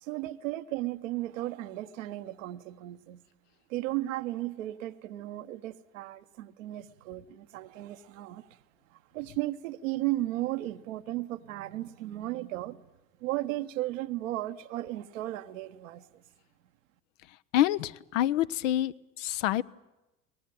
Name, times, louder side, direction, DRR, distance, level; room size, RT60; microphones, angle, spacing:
voice 1, 0.0-3.2 3.7-8.6 8.9-12.8 13.2-16.1, right 16 dB, 65° right, 10 dB, 1.1 m, -35 dB
voice 2, 17.5-18.9 19.2-19.6, left 13 dB, 60° left, 15 dB, 0.7 m, -26 dB
23.0 x 19.0 x 9.0 m, 0.99 s
figure-of-eight pair, 65°, 42 cm